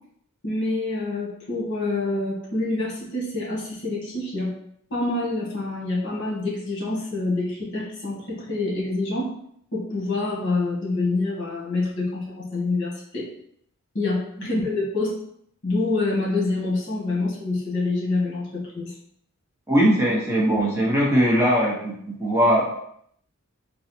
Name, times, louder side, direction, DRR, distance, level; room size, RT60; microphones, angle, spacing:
voice 1, 0.4-4.5 4.9-9.3 9.7-13.3 13.9-15.1 15.6-18.9, left 2 dB, 60° left, -4 dB, 1.5 m, -26 dB
voice 2, 19.7-22.7, equal, 10° right, -4 dB, 0.8 m, -20 dB
4.0 x 2.3 x 4.2 m, 0.69 s
head